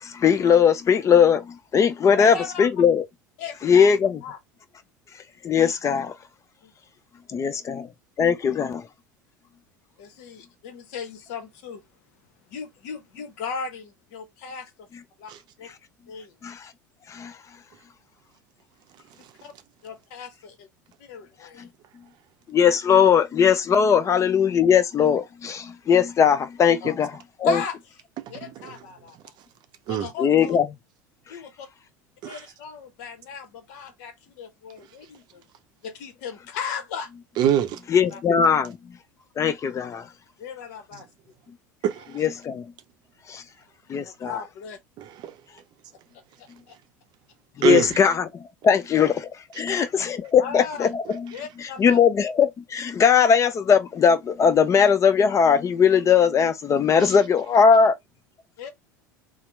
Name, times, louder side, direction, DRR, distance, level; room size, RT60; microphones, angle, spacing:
voice 1, 0.0-3.0 3.6-4.2 5.4-6.1 7.3-7.9 8.2-8.8 16.4-16.7 17.1-17.3 22.5-27.1 27.4-27.6 30.2-30.6 37.9-38.8 39.4-40.1 42.2-42.6 43.3-43.4 43.9-44.4 47.6-48.3 48.6-49.3 49.6-51.3 51.8-58.0, left 7 dB, 30° left, 0.6 m, -19 dB
voice 2, 2.1-2.7 3.4-3.9 4.2-4.4 6.6-6.7 7.3-7.5 10.0-11.8 12.5-14.9 15.2-15.3 15.6-15.7 16.1-16.3 19.2-19.5 19.8-20.7 21.0-21.7 26.8-26.9 27.4-27.8 28.3-29.2 29.9-30.6 31.3-31.7 32.2-35.4 35.8-37.1 38.1-38.2 40.4-41.1 44.0-44.8 46.1-46.8 50.4-50.9 51.3-52.0 58.6-58.7, left 6 dB, 60° left, 0.8 m, -37 dB
voice 3, 37.4-37.8 41.8-42.2 45.0-45.3 47.6-48.0 49.6-49.8 57.1-57.2, right 10 dB, 45° right, 0.6 m, -25 dB
2.8 x 2.0 x 3.3 m
figure-of-eight pair, 70°, 10 cm